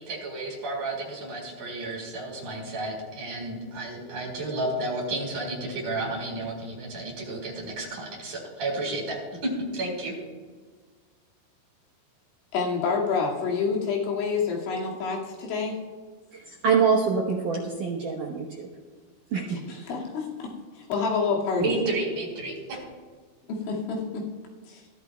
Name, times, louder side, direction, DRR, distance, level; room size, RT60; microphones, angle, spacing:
voice 1, 0.0-9.2 9.4-10.1 21.6-22.8, right 2 dB, 45° right, -3 dB, 5.7 m, -31 dB
voice 2, 12.5-15.8 19.5-21.8 23.5-24.3 24.7-24.8, left 5 dB, 75° left, -3 dB, 4.5 m, -28 dB
voice 3, 16.3-18.7 19.3-19.6, right 5 dB, 80° right, 0 dB, 1.8 m, -25 dB
24.0 x 13.5 x 2.3 m, 1.5 s
omnidirectional pair, 5.6 m